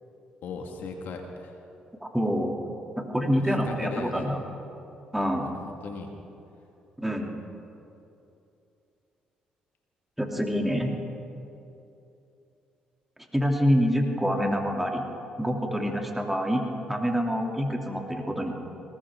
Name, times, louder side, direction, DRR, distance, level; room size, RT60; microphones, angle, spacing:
voice 1, 0.4-1.6 3.4-4.3 5.4-6.1, left 5 dB, 70° left, 3 dB, 1.8 m, -38 dB
voice 2, 2.0-2.5 3.0-4.4 5.1-5.5 7.0-7.3 10.2-10.9 13.3-15.0 15.4-16.6 16.9-18.5, equal, 5° right, 1 dB, 2.8 m, -26 dB
20.5 x 19.0 x 3.7 m, 2.8 s
supercardioid pair, 55°, 3 cm